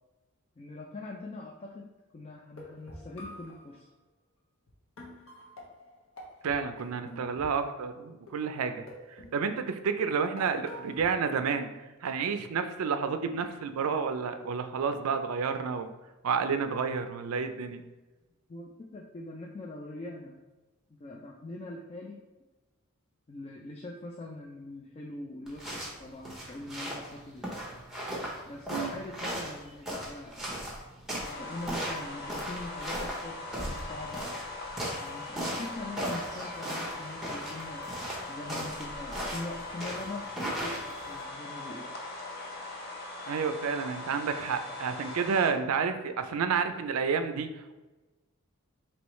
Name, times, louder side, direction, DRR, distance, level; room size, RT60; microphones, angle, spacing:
voice 1, 0.6-1.8 2.1-3.9 18.5-20.4 21.0-22.2 23.3-27.5 28.5-30.5 31.3-34.3 35.0-37.8 38.3-41.9, left 2 dB, 25° left, -1 dB, 0.3 m, -42 dB
sound 1, 2.4-3.7 4.7-4.8 5.0-7.7 8.3-8.6 8.9-9.9 10.4-11.4, equal, 60° left, 1.1 m, -48 dB
voice 2, 6.4-8.8 9.1-11.7 12.0-15.9 16.2-17.8 28.7-28.9 43.3-47.5, right 5 dB, 75° right, 8 dB, 0.4 m, -30 dB
sound 2, 25.5-41.2, right 1 dB, ahead, 0.8 m, -37 dB
sound 3, 31.2-45.5, left 2 dB, 45° left, 0.7 m, -41 dB
4.6 x 3.0 x 3.1 m, 1.1 s
head